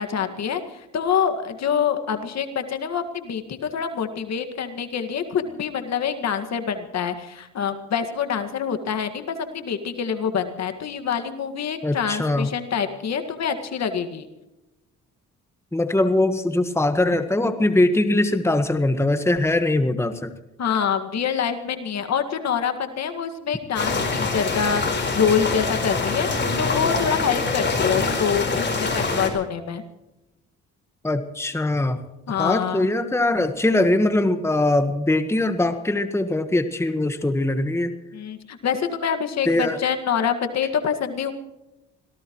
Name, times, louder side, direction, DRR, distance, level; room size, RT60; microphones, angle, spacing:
voice 1, 0.0-14.3 20.6-29.8 32.3-32.9 38.1-41.3, left 7 dB, 60° left, 7 dB, 2.0 m, -26 dB
voice 2, 11.8-12.5 15.7-20.3 31.0-32.0 32.4-37.9 39.5-39.8, left 2 dB, 10° left, 9 dB, 1.4 m, -21 dB
sound 1, 23.8-29.3, left 4 dB, 35° left, 4.4 m, -24 dB
25.5 x 18.0 x 3.1 m, 0.97 s
cardioid pair, 90°, 30 cm